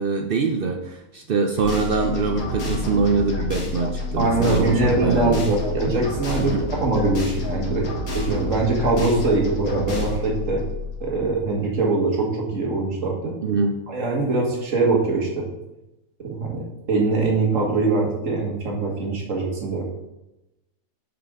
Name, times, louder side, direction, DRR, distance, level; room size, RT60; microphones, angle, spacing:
voice 1, 0.0-5.5 6.4-6.7 13.4-13.8, right 4 dB, 75° right, 4 dB, 0.5 m, -23 dB
sound 1, 1.6-11.5, left 3 dB, 75° left, 1.9 m, -29 dB
voice 2, 4.2-7.8 8.1-10.6 11.0-13.3 13.9-15.5 16.2-16.6 16.9-19.8, right 3 dB, 60° right, -1 dB, 1.9 m, -22 dB
8.1 x 5.0 x 3.7 m, 0.95 s
omnidirectional pair, 1.6 m